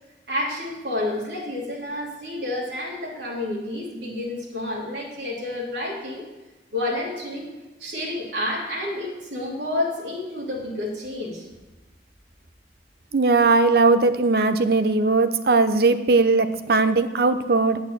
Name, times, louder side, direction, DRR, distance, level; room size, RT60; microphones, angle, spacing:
voice 1, 0.3-6.2 6.7-7.5 7.8-11.4, left 1 dB, 80° right, -3 dB, 3.1 m, -29 dB
voice 2, 13.1-17.8, right 3 dB, 60° right, 10 dB, 0.6 m, -19 dB
9.2 x 6.4 x 7.5 m, 1.1 s
head